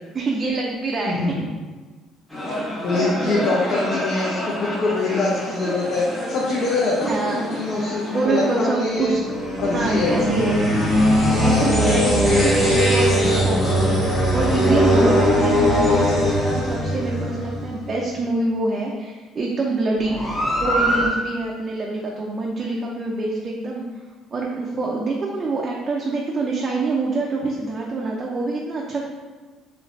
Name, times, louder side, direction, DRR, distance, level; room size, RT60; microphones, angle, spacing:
voice 1, 0.1-1.2 3.2-3.8 7.1-7.5 8.1-9.2 9.7-10.7 11.4-20.2 20.6-23.8 24.3-29.1, right 2 dB, 35° right, -2 dB, 0.4 m, -25 dB
voice 2, 1.1-1.5 2.5-2.6 2.8-9.1 9.6-10.2 11.4-11.8, left 3 dB, 55° left, -4 dB, 0.6 m, -24 dB
sound 1, 2.3-17.9 20.0-21.1, equal, 10° left, 1.4 m, -21 dB
3.2 x 3.0 x 2.5 m, 1.3 s
cardioid pair, 105°, 0 cm